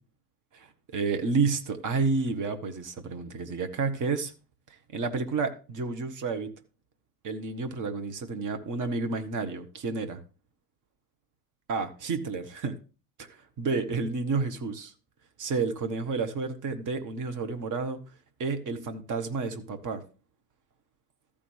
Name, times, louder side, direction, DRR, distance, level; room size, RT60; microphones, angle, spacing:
voice 1, 0.5-4.3 4.9-6.5 7.2-10.2 11.7-12.8 13.2-14.9 15.4-18.0 18.4-20.0, right 4 dB, 45° right, 8 dB, 1.5 m, -30 dB
14.5 x 5.2 x 3.4 m, 0.33 s
figure-of-eight pair, 60°, 45 cm